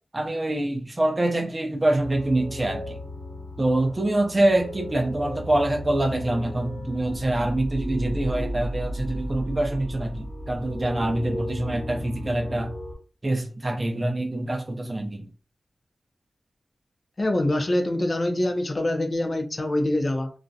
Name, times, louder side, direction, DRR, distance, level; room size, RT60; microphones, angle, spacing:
voice 1, 0.1-3.0 3.6-12.7 13.2-15.3, right 1 dB, 30° right, 0.5 m, -25 dB
sound 1, 2.0-12.9, equal, 10° right, 0.9 m, -34 dB
voice 2, 17.2-20.3, left 1 dB, 40° left, 0.4 m, -24 dB
2.3 x 2.1 x 2.6 m
wide cardioid pair, 120°, 0 cm